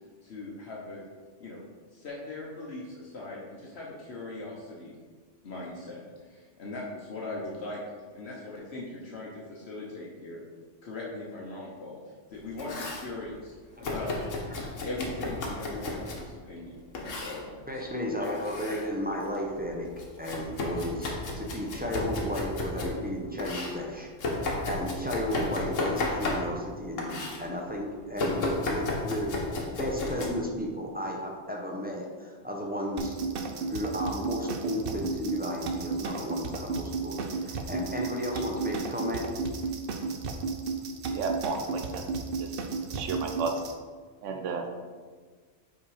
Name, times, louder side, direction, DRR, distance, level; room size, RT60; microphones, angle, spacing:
voice 1, 0.2-1.0 1.4-1.6 1.9-4.9 5.4-6.0 6.3-7.8 8.1-10.4 10.8-12.0 12.3-14.3 14.6-17.9, left 2 dB, 60° left, -4 dB, 1.2 m, -40 dB
Domestic sounds home sounds, 12.3-13.1 13.8-16.3 16.9-17.4 18.2-18.9 19.2-23.0 23.4-26.7 27.0-27.4 28.2-30.3, left 2 dB, 85° left, 1.4 m, -33 dB
voice 2, 17.7-19.9 20.2-29.3 29.6-33.2 33.7-39.2, equal, 10° right, -1 dB, 0.7 m, -34 dB
sound 1, 33.0-43.7, right 4 dB, 55° right, 0.7 m, -33 dB
voice 3, 41.1-42.0 42.4-42.6 42.9-43.6 44.2-44.7, right 4 dB, 75° right, 4 dB, 1.1 m, -33 dB
5.9 x 4.6 x 4.8 m, 1.5 s
omnidirectional pair, 1.3 m